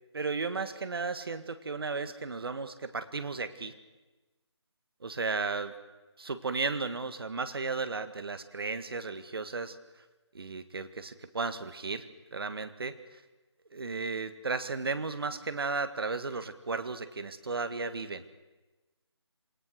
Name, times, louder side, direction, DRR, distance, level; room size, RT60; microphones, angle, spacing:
voice 1, 0.1-3.7 5.0-5.7 6.2-9.7 10.3-12.1 12.3-13.0 13.7-18.2, right 4 dB, 55° right, 11 dB, 1.7 m, -34 dB
27.0 x 19.0 x 6.4 m, 1.2 s
figure-of-eight pair, 165°, 15 cm